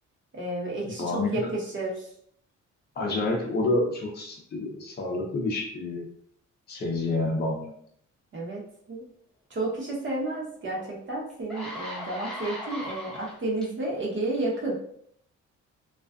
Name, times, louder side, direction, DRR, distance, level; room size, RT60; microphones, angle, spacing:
voice 1, 0.3-2.1 8.3-8.6 8.9-9.1 9.5-14.8, right 2 dB, 40° right, -3 dB, 0.9 m, -31 dB
voice 2, 1.0-1.5 3.0-6.1 6.7-7.7, left 2 dB, 35° left, -1 dB, 0.6 m, -28 dB
sound 1, 10.7-10.8 11.3-13.7 14.3-14.6, left 1 dB, ahead, 0.9 m, -38 dB
2.4 x 2.3 x 2.3 m, 0.66 s
cardioid pair, 90°, 30 cm